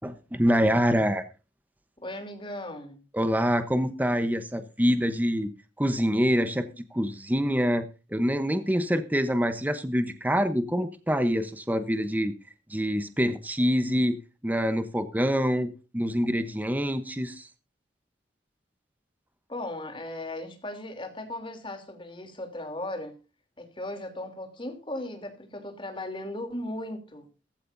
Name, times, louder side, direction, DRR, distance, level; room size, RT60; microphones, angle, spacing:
voice 1, 0.0-1.3 3.1-5.5 5.8-12.3 12.7-14.2 14.4-17.5, equal, 10° right, 0.9 m, -26 dB
voice 2, 2.0-3.0 19.5-23.2 23.6-27.3, left 1 dB, 30° left, 3.1 m, -37 dB
16.5 x 15.0 x 2.6 m
head